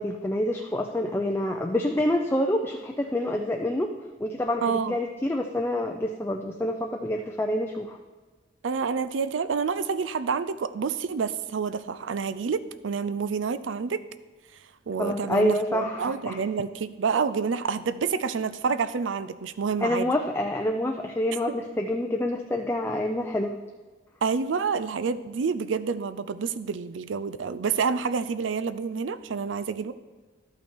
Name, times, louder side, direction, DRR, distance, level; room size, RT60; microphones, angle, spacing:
voice 1, 0.0-3.9 4.2-8.0 15.0-16.4 19.8-23.5, left 1 dB, 15° left, 2 dB, 0.4 m, -27 dB
voice 2, 4.6-5.0 8.6-14.0 14.9-20.1 21.5-21.6 24.2-29.9, right 5 dB, 85° right, 14 dB, 0.5 m, -28 dB
12.0 x 5.6 x 4.4 m, 1.3 s
head